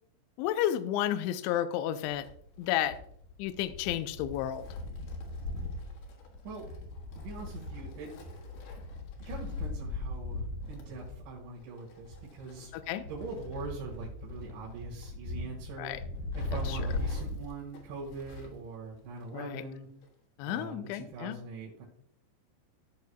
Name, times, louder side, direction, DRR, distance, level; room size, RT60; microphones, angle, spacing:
voice 1, 0.4-2.3 2.6-3.0 3.4-4.7 12.7-13.1 15.8-16.0 16.7-16.9 19.3-19.6 20.4-21.4, left 12 dB, 85° left, 11 dB, 2.9 m, -32 dB
Wind, 2.0-18.6 18.9-19.0 20.0-20.1, left 2 dB, 65° left, 3.0 m, -39 dB
voice 2, 7.2-8.1 9.3-12.7 13.1-15.9 16.4-19.9 20.5-21.8, right 3 dB, 75° right, -5 dB, 4.1 m, -42 dB
15.5 x 6.7 x 2.3 m, 0.68 s
omnidirectional pair, 5.4 m